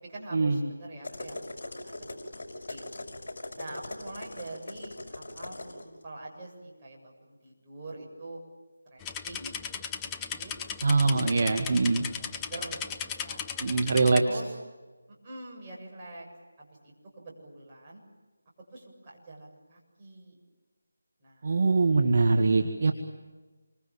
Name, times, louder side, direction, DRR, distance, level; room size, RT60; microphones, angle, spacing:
voice 1, 0.0-2.9 3.5-8.4 8.9-9.7 10.0-10.5 11.1-13.4 13.9-14.6 15.2-16.3 16.6-18.0 18.7-20.4 21.2-21.7, right 2 dB, 20° right, -3 dB, 7.8 m, -45 dB
sound 1, 1.0-5.8, left 2 dB, 50° left, 6.0 m, -40 dB
sound 2, 9.0-14.2, left 7 dB, 10° left, 0.7 m, -37 dB
voice 2, 10.8-12.0 13.6-14.2 21.4-22.9, right 3 dB, 45° right, 5 dB, 1.9 m, -23 dB
28.0 x 25.0 x 7.5 m, 1.3 s
figure-of-eight pair, 165°, 0 cm